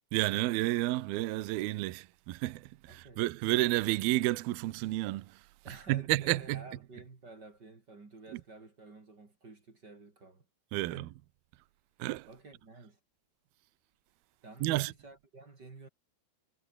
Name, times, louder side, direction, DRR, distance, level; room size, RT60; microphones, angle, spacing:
voice 1, 0.1-5.4 5.7-6.7 8.3-8.4 10.7-11.1 12.0-12.3 14.6-14.9, right 17 dB, 75° right, 2.4 m, -31 dB
voice 2, 2.9-3.2 5.6-10.5 10.8-11.1 12.2-13.0 14.4-15.9, right 3 dB, 25° right, 2.9 m, -51 dB
omnidirectional pair, 5.4 m